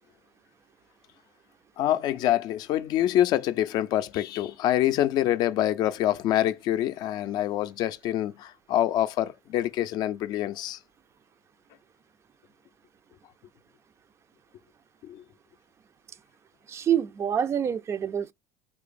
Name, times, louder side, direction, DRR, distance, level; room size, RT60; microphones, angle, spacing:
voice 1, 1.8-10.8 15.0-15.2, left 12 dB, 60° left, 0.4 m, -26 dB
voice 2, 16.7-18.3, right 9 dB, 35° right, 0.3 m, -26 dB
3.6 x 3.0 x 2.5 m
hypercardioid pair, 70°, 8 cm